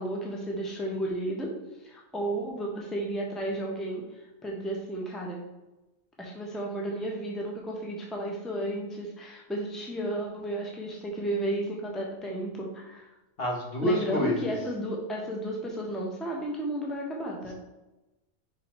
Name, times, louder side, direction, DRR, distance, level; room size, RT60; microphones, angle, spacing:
voice 1, 0.0-1.5 1.8-5.4 6.2-13.1 13.8-17.5, right 1 dB, ahead, -1 dB, 1.0 m, -33 dB
voice 2, 13.4-14.4, equal, 45° left, -2 dB, 1.6 m, -27 dB
5.4 x 4.8 x 4.5 m, 1.0 s
omnidirectional pair, 1.4 m